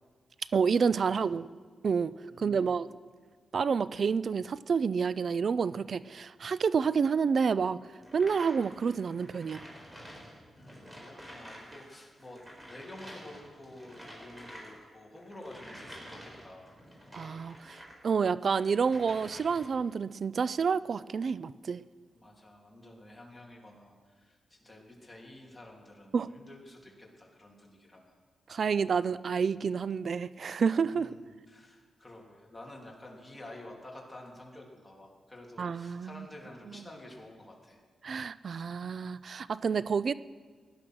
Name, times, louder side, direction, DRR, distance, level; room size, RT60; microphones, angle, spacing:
voice 1, 0.5-1.5 1.8-2.9 3.5-7.8 8.1-9.6 17.1-21.8 26.1-26.3 28.5-31.1 35.6-36.2 38.0-40.1, right 6 dB, 55° right, 17 dB, 0.3 m, -29 dB
voice 2, 2.3-2.9 10.6-16.7 22.1-28.2 30.9-37.8, left 1 dB, 15° left, -2 dB, 3.2 m, -50 dB
sound 1, 8.0-11.8 12.1-18.0 18.4-19.8, equal, 15° right, 4.3 m, -49 dB
16.5 x 11.5 x 6.3 m, 1.6 s
cardioid pair, 95°, 0 cm